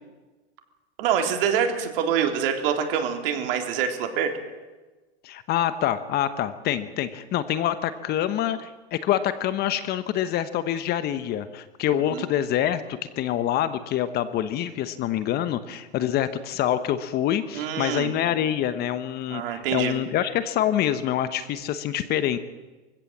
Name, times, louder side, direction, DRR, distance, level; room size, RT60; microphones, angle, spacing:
voice 1, 1.0-4.3 12.1-12.2 17.5-18.1 19.3-20.0, right 8 dB, 55° right, 5 dB, 3.5 m, -25 dB
voice 2, 5.2-22.4, left 11 dB, 30° left, 12 dB, 1.1 m, -26 dB
23.5 x 16.0 x 7.5 m, 1.2 s
hypercardioid pair, 135°, 33 cm